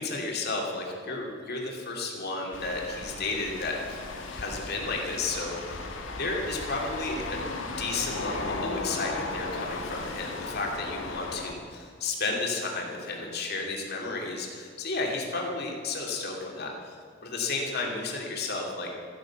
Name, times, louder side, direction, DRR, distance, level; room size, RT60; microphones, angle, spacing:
voice 1, 0.0-4.0 4.3-5.9 6.2-7.5 7.8-18.9, left 3 dB, 55° left, -1 dB, 2.7 m, -32 dB
sound 1, 2.5-11.5, left 3 dB, 70° left, 1.7 m, -36 dB
14.0 x 10.5 x 7.3 m, 2.2 s
head